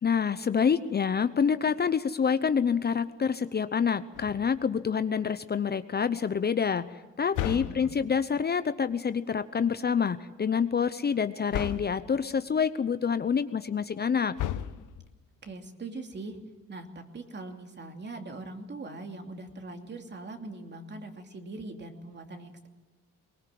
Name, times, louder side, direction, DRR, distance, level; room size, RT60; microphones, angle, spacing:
voice 1, 0.0-14.4, left 6 dB, 35° left, 12 dB, 0.8 m, -27 dB
sound 1, 4.1-4.8 7.3-8.3 11.5-12.1 14.4-15.2, left 12 dB, 85° left, 0.9 m, -34 dB
voice 2, 7.5-7.9 15.4-16.4 16.7-22.7, right 2 dB, 35° right, 4 dB, 2.8 m, -41 dB
23.0 x 20.0 x 7.7 m, 1.2 s
cardioid pair, 90°, 30 cm